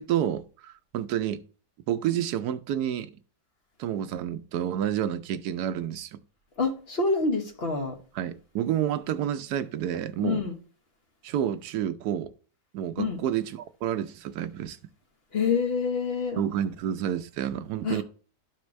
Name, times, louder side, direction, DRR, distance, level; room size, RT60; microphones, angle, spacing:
voice 1, 0.0-1.4 1.9-3.1 3.8-6.2 8.1-10.4 11.2-12.3 12.7-14.8 16.4-18.0, right 10 dB, 80° right, 1.2 m, -29 dB
voice 2, 6.6-8.0 10.2-10.5 13.0-13.2 15.3-16.4 17.8-18.0, left 4 dB, 40° left, 1.5 m, -27 dB
12.5 x 4.5 x 3.1 m
omnidirectional pair, 1.7 m